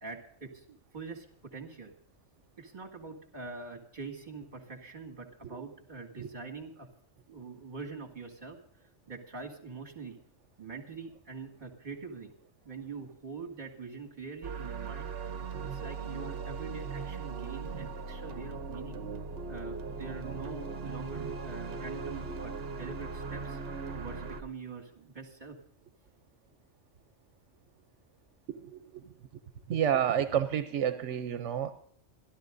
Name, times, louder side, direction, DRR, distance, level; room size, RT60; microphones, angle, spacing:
voice 1, 0.0-1.9 2.6-6.9 7.3-8.6 9.1-10.2 10.6-12.3 12.6-15.1 15.7-19.0 19.5-23.6 23.9-25.6, right 4 dB, 40° right, 3 dB, 2.2 m, -44 dB
sound 1, 14.4-24.4, right 4 dB, 60° right, 1.1 m, -39 dB
voice 2, 28.5-29.0 29.7-31.7, right 9 dB, 80° right, 10 dB, 1.0 m, -30 dB
26.5 x 12.0 x 2.6 m, 0.63 s
omnidirectional pair, 1.2 m